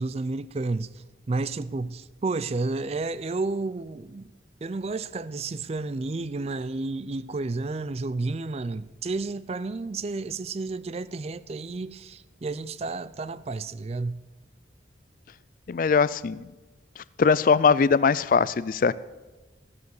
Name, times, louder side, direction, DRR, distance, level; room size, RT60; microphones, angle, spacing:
voice 1, 0.0-4.3 4.6-14.2, right 3 dB, 30° right, 0.4 m, -31 dB
voice 2, 15.7-16.5 17.2-18.9, left 5 dB, 45° left, 0.3 m, -21 dB
15.0 x 6.6 x 7.1 m
head